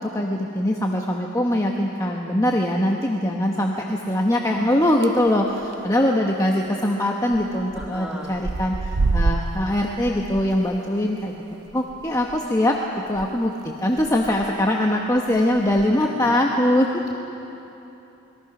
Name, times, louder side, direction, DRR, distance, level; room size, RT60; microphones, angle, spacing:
voice 1, 0.0-11.3 11.7-17.1, left 1 dB, 15° left, 0 dB, 1.1 m, -22 dB
sound 1, 4.8-5.3 5.6-5.9 6.2-6.3 6.5-6.6 7.3-7.9 8.2-13.3 13.6-13.7 14.0-14.5 15.2-15.9, right 3 dB, 75° right, 0.7 m, -28 dB
voice 2, 7.8-8.5 16.0-16.3, equal, 5° right, -2 dB, 2.7 m, -38 dB
27.0 x 22.0 x 6.0 m, 3.0 s
head